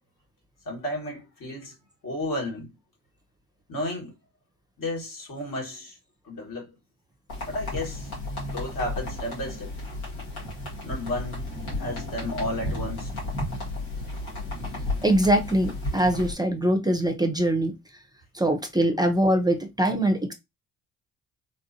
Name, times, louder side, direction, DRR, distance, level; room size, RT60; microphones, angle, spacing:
voice 1, 0.6-1.7 2.0-2.7 3.7-4.1 4.8-6.0 6.2-6.7 7.5-8.1 8.5-9.7 10.8-11.5 11.7-13.1, left 1 dB, 55° left, 1.8 m, -32 dB
sound 1, 7.3-16.3, left 1 dB, 75° left, 2.0 m, -33 dB
voice 2, 15.0-17.7 18.3-20.3, right 1 dB, 10° right, 0.7 m, -23 dB
3.7 x 2.4 x 2.8 m
hypercardioid pair, 50°, 40 cm